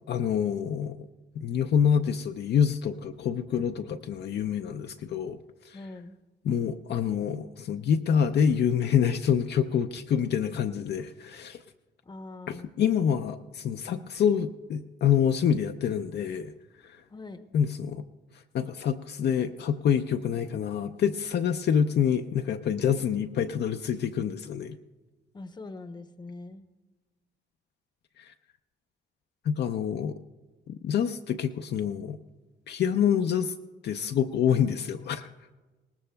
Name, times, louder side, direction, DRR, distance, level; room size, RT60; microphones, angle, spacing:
voice 1, 0.1-1.0 1.4-5.4 5.7-5.8 6.4-11.6 12.5-16.5 16.8-17.0 17.5-18.0 18.5-24.8 28.2-28.3 29.5-30.2 30.7-32.2 32.7-33.5 33.8-35.3, left 8 dB, 60° left, 6 dB, 0.5 m, -26 dB
voice 2, 5.7-6.2 12.0-12.7 17.1-17.5 25.3-26.7, left 2 dB, 20° left, 9 dB, 0.8 m, -42 dB
21.0 x 18.0 x 2.2 m, 1.2 s
cardioid pair, 90°, 20 cm